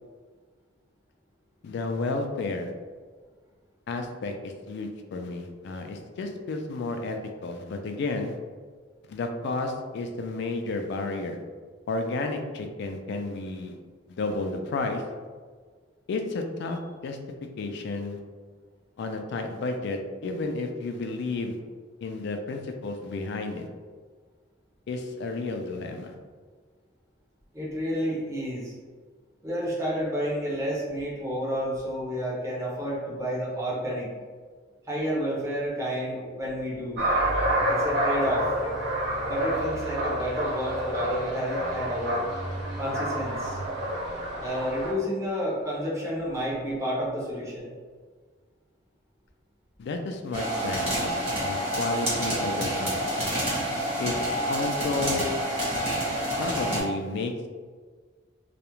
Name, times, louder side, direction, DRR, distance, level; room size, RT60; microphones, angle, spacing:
voice 1, 1.6-2.7 3.9-8.4 9.1-11.4 11.9-13.8 14.1-15.0 16.1-17.2 17.6-18.2 19.0-21.6 22.0-23.7 24.9-26.1 49.8-53.3 54.0-55.3 56.4-57.5, left 3 dB, 65° left, 5 dB, 0.3 m, -32 dB
voice 2, 27.5-28.7 29.4-34.1 34.9-37.1 37.7-38.5 39.3-42.2 42.8-43.6 44.4-47.7, equal, 15° right, -5 dB, 0.6 m, -30 dB
sound 1, 37.0-44.9, right 1 dB, 65° right, 0.6 m, -28 dB
sound 2, 50.3-56.8, right 1 dB, 35° right, 1.2 m, -28 dB
2.3 x 2.0 x 2.9 m, 1.5 s
head